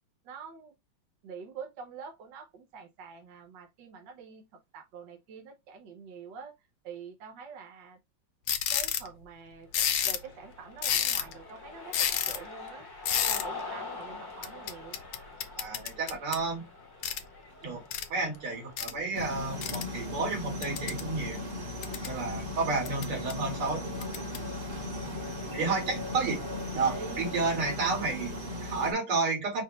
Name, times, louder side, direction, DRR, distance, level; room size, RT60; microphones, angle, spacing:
voice 1, 0.2-0.7 1.2-4.4 4.7-6.5 6.8-8.0 8.7-9.7 10.0-11.9 12.3-12.9 13.3-15.0 26.9-27.3, right 6 dB, 60° right, 1.6 m, -45 dB
sound 1, 8.5-9.1 9.7-10.3 10.8-11.4 11.9-12.4 13.0-13.4 14.4-16.4 17.0-17.2 17.9-18.0 18.8-18.9 19.6-19.8 20.6-21.1 21.6-22.1 22.8-23.3 24.0-24.4, left 9 dB, 75° left, 0.8 m, -30 dB
Cheering, 9.8-19.0, left 3 dB, 15° left, 1.2 m, -45 dB
voice 2, 15.6-16.7 17.6-17.8 18.1-21.4 22.1-24.1 25.5-26.4 26.7-29.6, right 4 dB, 90° right, 2.9 m, -31 dB
sound 2, 19.1-28.9, left 2 dB, 30° right, 1.4 m, -37 dB
5.6 x 2.7 x 3.1 m
omnidirectional pair, 2.3 m